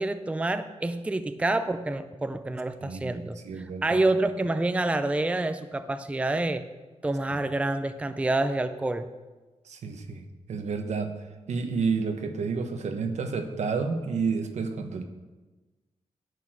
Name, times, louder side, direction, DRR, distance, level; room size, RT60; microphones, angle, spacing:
voice 1, 0.0-6.6 7.0-9.1, right 2 dB, 10° right, 10 dB, 0.5 m, -27 dB
voice 2, 2.8-3.2 3.4-4.0 9.6-11.1 11.5-15.0, right 5 dB, 75° right, 6 dB, 1.2 m, -30 dB
10.5 x 8.4 x 6.2 m, 1.2 s
wide cardioid pair, 120°, 12 cm